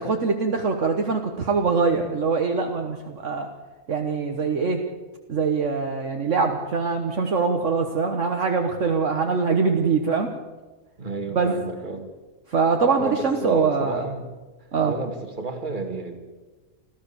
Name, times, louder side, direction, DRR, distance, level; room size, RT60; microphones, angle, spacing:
voice 1, 0.0-3.5 3.9-4.8 5.3-10.3 11.3-11.5 12.5-14.0 14.7-14.9, right 4 dB, 60° right, 4 dB, 1.6 m, -23 dB
voice 2, 11.0-12.1 13.0-14.3 14.8-16.2, right 3 dB, 35° right, 4 dB, 2.5 m, -32 dB
26.5 x 15.0 x 7.1 m, 1.3 s
omnidirectional pair, 1.5 m